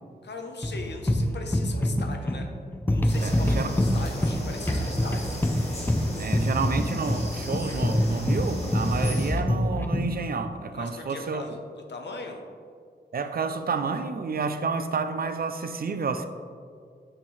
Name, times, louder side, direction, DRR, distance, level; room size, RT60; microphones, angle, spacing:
voice 1, 0.2-2.5 2.9-5.3 10.7-12.4, left 3 dB, 70° left, 3 dB, 0.8 m, -39 dB
sound 1, 0.6-10.2, left 1 dB, 10° left, 0.4 m, -25 dB
sound 2, 3.1-9.3, equal, 35° left, 1.3 m, -36 dB
voice 2, 3.2-3.7 6.1-11.6 13.1-16.3, right 5 dB, 55° right, 9 dB, 0.4 m, -30 dB
8.7 x 4.4 x 3.1 m, 2.2 s
wide cardioid pair, 120°, 18 cm